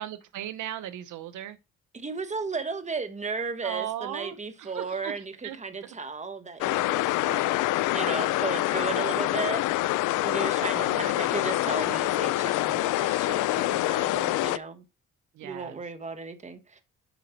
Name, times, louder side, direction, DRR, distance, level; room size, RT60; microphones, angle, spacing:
voice 1, 0.0-1.6 3.6-5.1 5.4-5.6 5.8-5.9 7.2-7.8 10.7-11.2 15.3-15.8, right 12 dB, 80° right, 0.9 m, -37 dB
voice 2, 1.9-7.2 7.9-9.6 10.2-14.8 15.4-16.8, right 4 dB, 25° right, 1.3 m, -35 dB
sound 1, 6.6-14.6, left 17 dB, 85° left, 0.5 m, -26 dB
8.2 x 5.1 x 4.5 m
cardioid pair, 90°, 30 cm